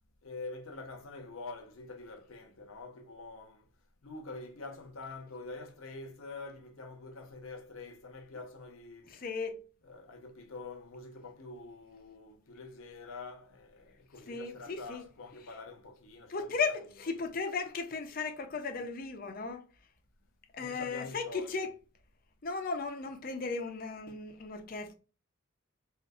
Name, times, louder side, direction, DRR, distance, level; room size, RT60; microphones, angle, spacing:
voice 1, 0.2-3.7 4.0-9.2 9.8-17.3 20.6-21.7, left 3 dB, 75° left, 0.8 m, -46 dB
voice 2, 9.1-9.6 14.3-15.0 16.3-19.7 20.5-21.7 22.4-24.9, left 4 dB, 40° left, 0.5 m, -36 dB
3.8 x 2.5 x 2.3 m
head